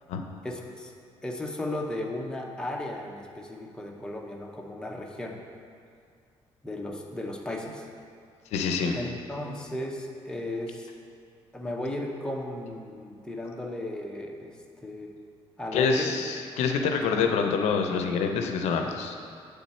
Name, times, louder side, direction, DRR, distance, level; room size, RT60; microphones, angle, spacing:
voice 1, 0.4-0.9 1.2-5.4 6.6-7.9 8.9-10.9 11.5-15.1 15.6-16.1, left 1 dB, 5° left, 0 dB, 0.7 m, -35 dB
voice 2, 8.5-9.0 15.7-19.1, left 5 dB, 90° left, 4 dB, 0.5 m, -26 dB
8.6 x 3.5 x 4.2 m, 2.2 s
cardioid pair, 105°, 11 cm